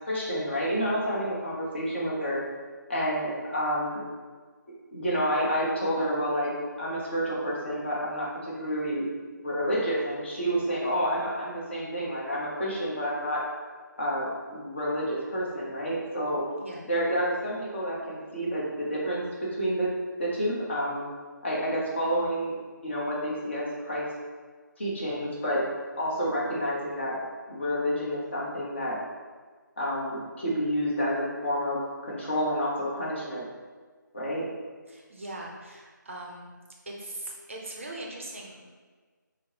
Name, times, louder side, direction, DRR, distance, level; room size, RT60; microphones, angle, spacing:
voice 1, 0.1-2.4 2.9-4.0 4.9-6.5 6.8-9.1 9.4-13.4 14.0-16.4 16.9-19.2 19.5-19.9 20.2-21.0 21.4-22.6 22.8-24.1 24.8-25.6 26.0-27.2 27.5-29.0 29.8-33.4 34.1-34.4, equal, 35° left, -5 dB, 0.9 m, -29 dB
voice 2, 16.6-16.9 34.9-36.5 36.9-38.7, right 1 dB, 40° right, -2 dB, 0.5 m, -40 dB
5.4 x 2.0 x 3.0 m, 1.5 s
figure-of-eight pair, 155°, 11 cm